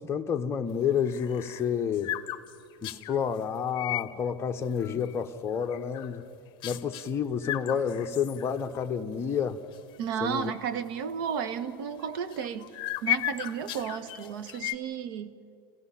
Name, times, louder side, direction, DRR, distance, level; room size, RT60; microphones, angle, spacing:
voice 1, 0.0-2.1 2.8-6.2 6.6-9.6 10.2-10.5, left 7 dB, 20° left, 1.0 m, -29 dB
sound 1, 0.8-3.2 3.7-4.1 4.6-5.2 5.5-6.2 6.6-7.1 7.4-8.9 9.2-9.3 9.7-10.0 10.5-10.6 12.0-14.7, left 15 dB, 40° left, 0.9 m, -36 dB
voice 2, 10.0-12.7 13.0-15.3, right 7 dB, 65° right, 1.2 m, -33 dB
27.5 x 16.5 x 5.7 m
supercardioid pair, 135°, 12 cm